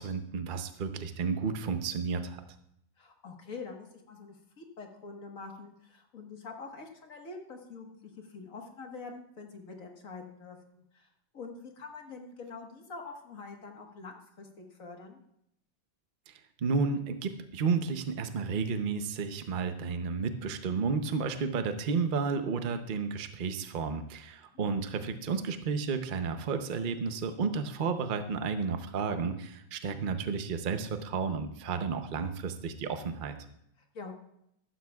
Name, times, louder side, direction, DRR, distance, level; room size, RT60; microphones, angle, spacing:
voice 1, 0.0-2.4 16.3-33.4, right 5 dB, 85° right, 8 dB, 0.4 m, -32 dB
voice 2, 3.0-15.2 33.9-34.1, left 4 dB, 45° left, 2 dB, 1.7 m, -45 dB
14.0 x 12.5 x 2.3 m, 0.75 s
omnidirectional pair, 2.1 m